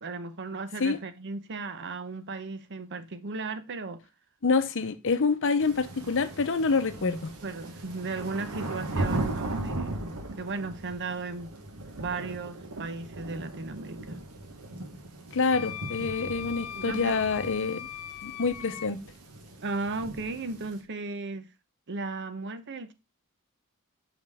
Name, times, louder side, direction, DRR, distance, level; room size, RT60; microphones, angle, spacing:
voice 1, 0.0-4.0 7.4-11.5 12.0-14.2 16.7-17.2 19.6-21.5 21.9-22.9, right 3 dB, 55° right, 0.8 m, -36 dB
voice 2, 4.4-7.3 15.3-17.9 18.2-19.0, left 4 dB, 60° left, 0.8 m, -27 dB
sound 1, 5.6-20.8, right 2 dB, 85° right, 1.4 m, -38 dB
Wind instrument woodwind instrument, 15.5-18.9, left 10 dB, 90° left, 0.5 m, -40 dB
5.8 x 5.4 x 3.5 m
head